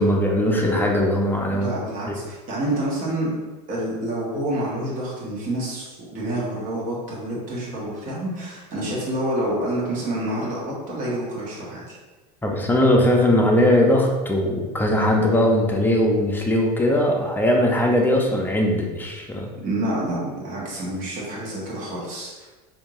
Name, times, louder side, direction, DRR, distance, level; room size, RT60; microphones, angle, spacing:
voice 1, 0.0-1.7 12.4-19.5, left 1 dB, 10° left, 0 dB, 0.7 m, -20 dB
voice 2, 1.5-3.3 3.7-5.9 6.1-12.0 19.6-22.5, right 1 dB, 40° right, -5 dB, 1.5 m, -28 dB
4.4 x 2.8 x 2.6 m, 1.2 s
hypercardioid pair, 90°, 21 cm